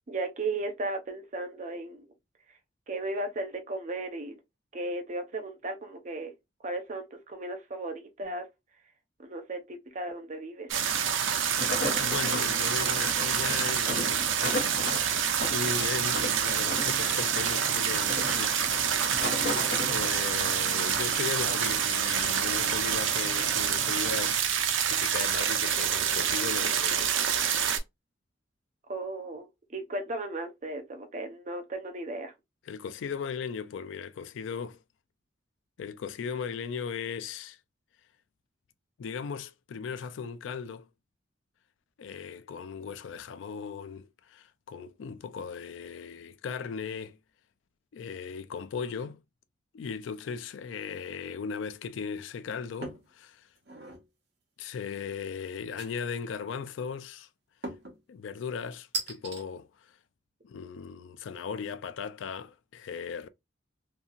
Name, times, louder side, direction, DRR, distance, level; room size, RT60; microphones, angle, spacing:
voice 1, 0.1-2.1 2.9-4.4 4.7-6.3 6.6-8.5 9.2-10.7 28.9-32.3, right 2 dB, 40° right, 0.6 m, -35 dB
sound 1, 10.7-27.8, right 8 dB, 85° right, 0.5 m, -27 dB
sound 2, 11.3-20.4, left 2 dB, 55° left, 0.7 m, -36 dB
voice 2, 12.0-14.3 15.5-18.6 19.9-24.4 24.9-27.2 32.7-34.8 35.8-37.6 39.0-40.9 42.0-47.2 47.9-49.2 49.7-53.4 54.6-57.3 58.1-59.7 60.4-63.3, left 6 dB, 80° left, 0.3 m, -37 dB
sound 3, 52.8-53.1 53.6-54.0 55.8-56.3 57.6-58.0 58.9-59.4, right 3 dB, 65° right, 0.9 m, -37 dB
2.8 x 2.7 x 2.3 m
head